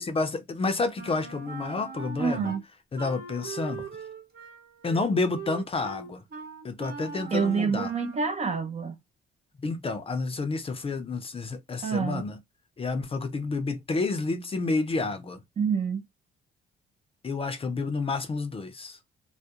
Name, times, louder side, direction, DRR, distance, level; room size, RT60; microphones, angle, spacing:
voice 1, 0.0-2.5 2.9-3.9 4.8-6.2 6.6-7.9 9.6-12.4 12.8-15.4 17.2-19.0, left 3 dB, 30° left, 0.5 m, -30 dB
Wind instrument woodwind instrument, 0.9-2.6 3.0-8.3, right 5 dB, 50° right, 1.0 m, -41 dB
voice 2, 2.2-2.6 7.3-9.0 11.8-12.2 15.6-16.0, right 5 dB, 35° right, 0.5 m, -27 dB
2.3 x 2.1 x 2.7 m
cardioid pair, 90°, 20 cm